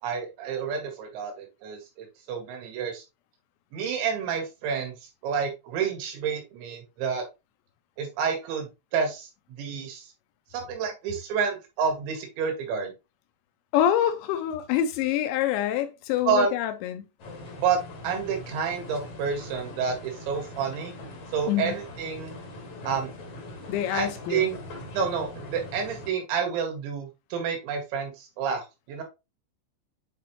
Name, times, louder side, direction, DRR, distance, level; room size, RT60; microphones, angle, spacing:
voice 1, 0.0-3.0 3.7-4.9 5.2-7.2 8.0-9.3 9.6-10.1 10.5-12.9 16.3-16.5 17.6-20.9 21.3-22.4 22.9-23.1 23.9-24.6 24.9-29.0, right 6 dB, 75° right, 3.8 m, -29 dB
voice 2, 13.7-17.0 21.5-21.8 23.7-24.5, left 11 dB, 80° left, 2.9 m, -26 dB
sound 1, 17.2-26.1, left 2 dB, 60° left, 1.6 m, -41 dB
8.4 x 4.2 x 3.0 m
omnidirectional pair, 5.4 m